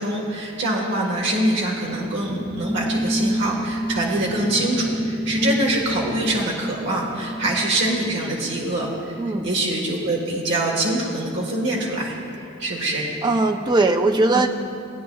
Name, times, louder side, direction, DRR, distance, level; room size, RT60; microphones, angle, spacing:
voice 1, 0.0-13.1 14.3-14.4, right 1 dB, 55° right, -3 dB, 1.4 m, -24 dB
sound 1, 1.2-9.0, equal, 80° left, 1.2 m, -29 dB
voice 2, 9.2-9.5 13.2-14.5, right 2 dB, 20° right, 5 dB, 0.4 m, -20 dB
18.5 x 9.4 x 2.3 m, 2.6 s
head